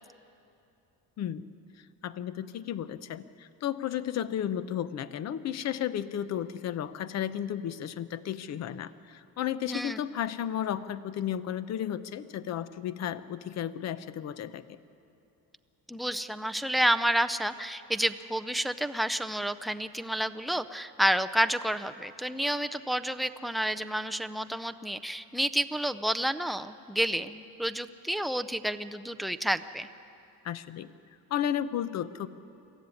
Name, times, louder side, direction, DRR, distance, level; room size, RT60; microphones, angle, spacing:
voice 1, 2.0-14.6 30.4-30.9 31.3-32.3, left 10 dB, 45° left, 14 dB, 0.8 m, -33 dB
voice 2, 9.7-10.0 15.9-29.9, right 1 dB, ahead, 8 dB, 0.4 m, -30 dB
22.5 x 15.5 x 9.7 m, 2.8 s
cardioid pair, 145°, 37 cm